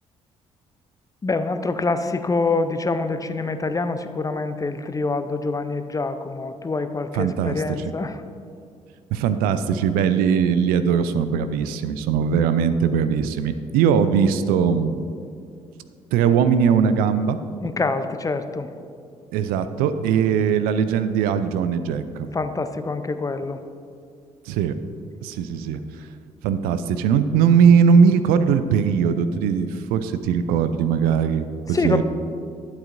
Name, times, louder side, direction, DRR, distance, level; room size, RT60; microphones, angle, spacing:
voice 1, 1.2-8.2 17.6-18.7 22.3-23.6 31.7-32.0, left 3 dB, 20° left, 10 dB, 0.5 m, -25 dB
voice 2, 7.1-7.6 9.1-15.0 16.1-17.4 19.3-22.3 24.5-24.7 25.2-25.8 26.4-32.0, right 7 dB, 70° right, 11 dB, 0.4 m, -20 dB
11.5 x 8.0 x 2.5 m, 2.4 s
hypercardioid pair, 45°, 16 cm